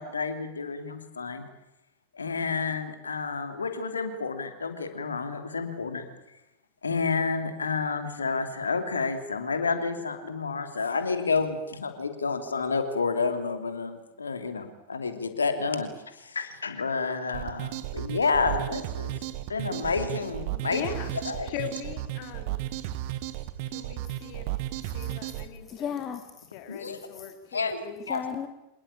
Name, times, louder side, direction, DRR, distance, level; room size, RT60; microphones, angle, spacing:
voice 1, 0.0-1.4 2.1-6.0 6.8-19.1 19.5-20.9 21.2-21.5 26.7-27.0 27.5-28.2, left 4 dB, 75° left, 8 dB, 2.9 m, -30 dB
sound 1, 17.3-25.5, right 14 dB, 45° right, 1.5 m, -34 dB
voice 2, 20.5-21.1 21.4-22.6 23.7-24.5 24.8-25.9 26.5-28.1, left 10 dB, 45° left, 7 dB, 3.1 m, -40 dB
voice 3, 25.6-26.5 27.0-27.3 28.1-28.5, left 8 dB, 25° left, 8 dB, 1.8 m, -36 dB
26.5 x 19.5 x 8.8 m, 0.93 s
figure-of-eight pair, 90°, 0 cm